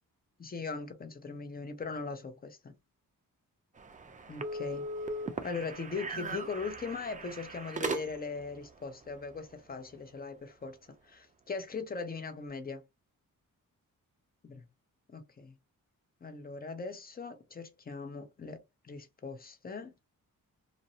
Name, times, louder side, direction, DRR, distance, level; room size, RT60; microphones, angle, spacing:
voice 1, 0.4-2.7 4.3-4.8 5.4-10.8 11.0-12.8 14.4-14.7 15.1-15.5 16.2-19.9, left 4 dB, 25° left, 0.6 m, -40 dB
sound 1, 3.8-8.4, right 2 dB, 25° right, 0.4 m, -38 dB
2.5 x 2.0 x 2.6 m
cardioid pair, 75°, 35 cm